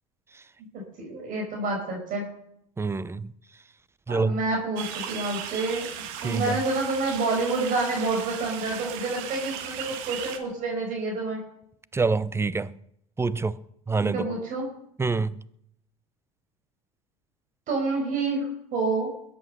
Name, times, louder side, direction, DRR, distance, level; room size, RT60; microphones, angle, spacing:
voice 1, 0.7-2.3 4.1-11.4 14.1-14.7 17.7-19.1, right 3 dB, 50° right, 5.4 m, -28 dB
voice 2, 2.8-3.3 4.1-4.4 6.2-6.6 11.9-12.7 13.2-13.5 13.9-14.2 15.0-15.3, right 4 dB, 15° right, 0.7 m, -26 dB
sound 1, 4.8-10.4, right 9 dB, 65° right, 2.1 m, -36 dB
21.5 x 8.5 x 6.8 m
hypercardioid pair, 75°, 18 cm